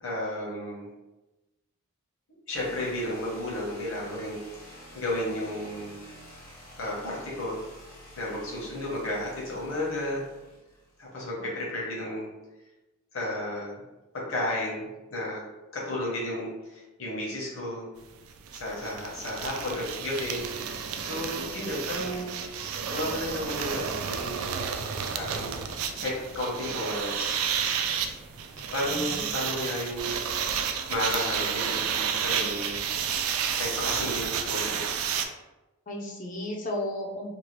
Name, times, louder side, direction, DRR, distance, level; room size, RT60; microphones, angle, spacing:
voice 1, 0.0-0.9 2.5-6.0 6.8-7.6 8.2-10.2 11.0-12.3 13.1-13.8 14.1-15.4 15.7-17.9 18.5-20.5 21.0-22.3 22.9-24.6 25.1-25.7 26.0-27.5 28.7-30.1 30.6-32.8 33.6-34.8, left 1 dB, 65° left, -5 dB, 0.9 m, -33 dB
sound 1, 2.5-11.3, left 1 dB, 90° left, 1.1 m, -49 dB
sound 2, 18.0-18.1 18.3-35.2, right 7 dB, 70° right, 0.3 m, -31 dB
sound 3, 20.4-33.1, right 1 dB, 15° right, 0.5 m, -52 dB
voice 2, 28.9-29.3 35.9-37.3, left 1 dB, 35° left, 0 dB, 0.5 m, -34 dB
2.7 x 2.3 x 3.1 m, 1.1 s
head